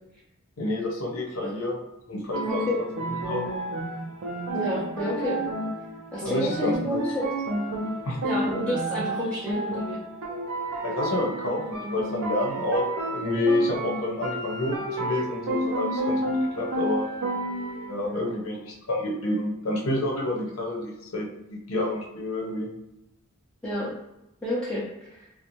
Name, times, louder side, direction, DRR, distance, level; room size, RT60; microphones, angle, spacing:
voice 1, 0.6-1.8 2.1-2.7 3.2-3.4 6.2-7.0 8.0-8.2 10.8-16.2 16.6-17.1 17.9-22.7, left 1 dB, 70° left, -3 dB, 0.7 m, -28 dB
sound 1, 2.3-17.9, right 1 dB, 75° right, 0.5 m, -31 dB
voice 2, 2.4-2.8 4.5-5.4 6.1-7.2 8.2-10.0 18.0-18.4 23.6-23.9 24.4-25.3, left 1 dB, 5° left, -8 dB, 0.5 m, -30 dB
2.6 x 2.1 x 2.9 m, 0.88 s
head